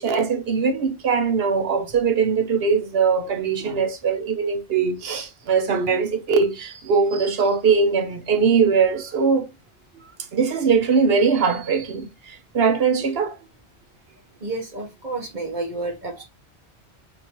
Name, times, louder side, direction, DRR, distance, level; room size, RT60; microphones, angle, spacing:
voice 1, 0.0-9.5 10.3-13.4, right 5 dB, 65° right, 1.0 m, -21 dB
voice 2, 14.4-16.2, right 2 dB, 45° right, 1.1 m, -30 dB
6.3 x 2.6 x 2.9 m
omnidirectional pair, 1.1 m